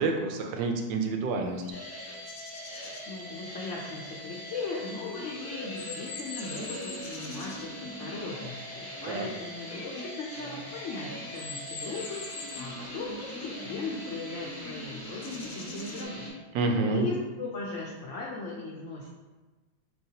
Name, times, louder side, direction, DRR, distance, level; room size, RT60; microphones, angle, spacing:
voice 1, 0.0-1.6 9.1-9.3 16.5-17.1, right 3 dB, 85° right, 3 dB, 1.3 m, -28 dB
sound 1, 1.6-7.8 8.8-16.0, left 4 dB, 70° left, 1.1 m, -46 dB
sound 2, 1.7-16.3, equal, 10° left, 0.9 m, -41 dB
voice 2, 3.1-16.3 16.9-19.1, left 3 dB, 90° left, -3 dB, 0.6 m, -38 dB
4.4 x 3.1 x 2.7 m, 1.2 s
omnidirectional pair, 1.9 m